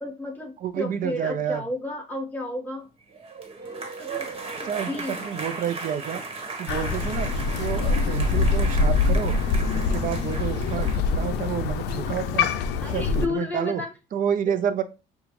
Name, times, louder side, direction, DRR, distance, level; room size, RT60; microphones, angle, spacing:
voice 1, 0.0-2.9 4.0-4.3 4.6-5.3 12.8-13.9, left 2 dB, 10° left, 0 dB, 1.5 m, -32 dB
voice 2, 0.6-1.7 4.6-6.2 6.6-9.4 9.7-12.5 12.8-13.8 14.1-14.8, right 8 dB, 55° right, 11 dB, 0.6 m, -29 dB
sound 1, 3.1-11.0, right 3 dB, 35° right, 1.3 m, -36 dB
Crow, 6.7-13.3, left 4 dB, 85° left, 0.5 m, -24 dB
6.2 x 2.3 x 3.0 m, 0.29 s
cardioid pair, 110°, 17 cm